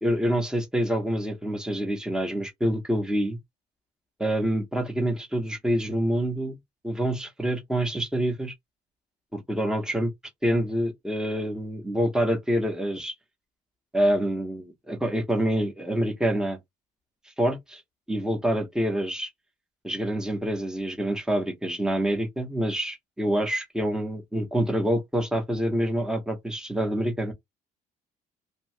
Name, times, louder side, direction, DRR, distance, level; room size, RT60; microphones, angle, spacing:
voice 1, 0.0-3.4 4.2-6.6 6.8-8.5 9.3-10.1 10.4-13.1 13.9-16.6 17.4-17.8 18.1-19.3 19.8-27.3, right 1 dB, 5° right, 0.9 m, -26 dB
2.7 x 2.3 x 3.2 m
cardioid pair, 110°, 17 cm